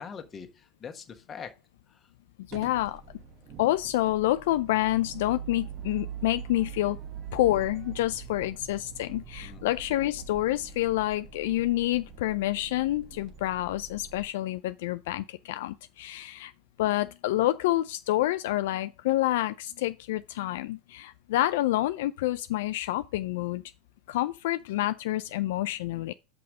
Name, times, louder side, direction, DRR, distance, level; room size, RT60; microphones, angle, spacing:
voice 1, 0.0-1.6 1.9-2.1 9.4-9.7, left 6 dB, 30° left, 1.3 m, -43 dB
voice 2, 2.5-3.0 3.6-7.0 7.3-16.5 16.8-23.6 24.1-26.1, left 15 dB, 70° left, 0.3 m, -28 dB
sound 1, 2.5-14.3, right 7 dB, 45° right, 1.1 m, -43 dB
5.7 x 4.9 x 6.4 m
hypercardioid pair, 90°, 0 cm